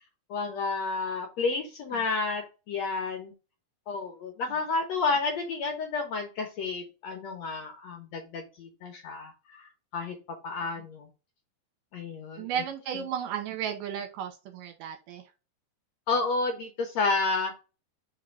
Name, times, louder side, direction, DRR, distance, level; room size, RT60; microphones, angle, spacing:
voice 1, 0.3-3.3 3.9-10.2 10.4-11.1 11.9-12.5 12.9-13.0 16.1-17.6, left 4 dB, 60° left, 2 dB, 2.0 m, -31 dB
voice 2, 12.4-15.2, right 8 dB, 70° right, 6 dB, 2.5 m, -34 dB
5.2 x 3.7 x 5.7 m, 0.30 s
omnidirectional pair, 4.2 m